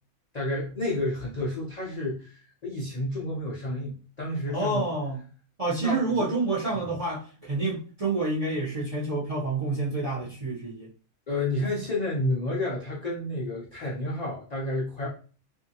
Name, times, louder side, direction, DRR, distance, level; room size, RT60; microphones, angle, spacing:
voice 1, 0.3-4.9 5.7-6.3 11.3-15.1, left 1 dB, 55° left, -4 dB, 0.4 m, -30 dB
voice 2, 4.5-5.2 5.6-10.9, right 3 dB, 40° right, -6 dB, 0.6 m, -28 dB
2.6 x 2.5 x 2.7 m, 0.39 s
omnidirectional pair, 1.5 m